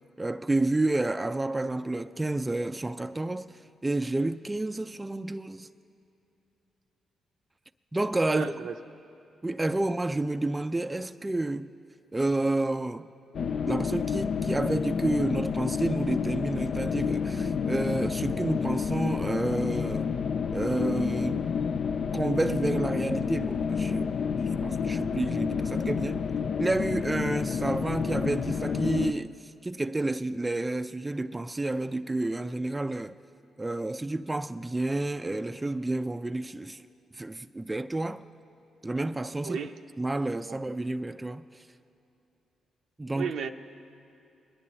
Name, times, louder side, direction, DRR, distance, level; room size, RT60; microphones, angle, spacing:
voice 1, 0.2-5.7 7.9-8.5 9.4-11.7 12.1-13.1 13.6-20.1 20.5-21.5 22.1-24.1 24.6-26.2 26.6-33.1 33.6-36.8 37.1-38.2 38.8-39.6 40.0-41.7 43.0-43.3, right 2 dB, 20° right, 0.3 m, -30 dB
voice 2, 8.3-8.8 39.4-39.8 40.5-40.6 43.1-43.5, right 6 dB, 75° right, 0.5 m, -33 dB
sound 1, 13.3-29.1, left 6 dB, 65° left, 0.3 m, -29 dB
22.5 x 10.5 x 2.9 m
supercardioid pair, 50°, 0 cm